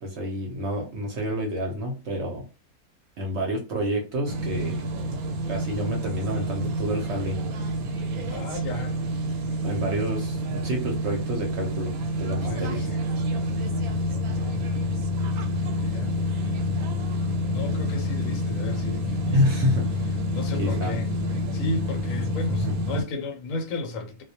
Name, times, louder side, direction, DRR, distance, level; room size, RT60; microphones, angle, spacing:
voice 1, 0.0-2.4 3.2-4.9 5.5-7.4 9.6-12.9 13.5-13.6 19.3-20.1 20.6-20.9 22.5-22.8, equal, 60° right, 0.8 m, -28 dB
sound 1, 4.3-23.0, left 1 dB, 85° right, 1.1 m, -28 dB
voice 2, 8.3-9.0 12.4-13.0 14.1-14.7 15.7-16.1 17.5-19.4 20.3-21.1 21.3-24.2, left 2 dB, 75° left, 1.0 m, -34 dB
2.3 x 2.1 x 2.7 m
omnidirectional pair, 1.5 m